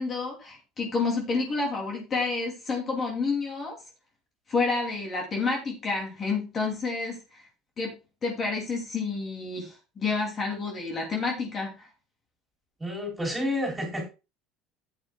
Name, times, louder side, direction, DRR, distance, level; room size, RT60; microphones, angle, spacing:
voice 1, 0.0-3.7 4.5-7.5 7.8-7.9 8.2-11.9, left 4 dB, 30° left, 0 dB, 2.8 m, -29 dB
voice 2, 12.8-14.1, left 1 dB, 10° right, 0 dB, 4.2 m, -30 dB
12.5 x 9.0 x 2.3 m, 0.28 s
cardioid pair, 140°, 0 cm